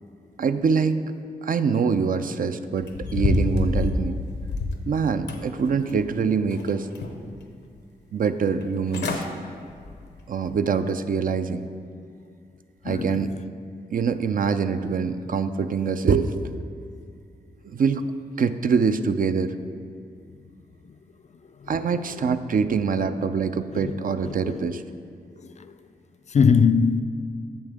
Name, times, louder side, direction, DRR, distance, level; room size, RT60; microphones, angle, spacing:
voice 1, 0.4-1.0 1.4-4.2 4.9-6.9 8.1-9.3 10.3-11.6 12.8-13.3 13.9-16.3 17.6-18.0 18.4-19.6 21.7-24.8, right 5 dB, 55° right, 0.4 m, -24 dB
sound 1, 2.8-4.8 5.3-6.1 6.5-7.4 7.8-7.9 8.6-8.7 8.9-9.3 9.7-10.0 10.5-10.6, left 2 dB, 80° left, 0.8 m, -27 dB
voice 2, 12.8-13.3 23.7-23.9 24.3-24.6 25.6-25.7 26.3-27.0, left 6 dB, 40° left, 0.4 m, -21 dB
8.6 x 6.4 x 3.5 m
supercardioid pair, 45°, 17 cm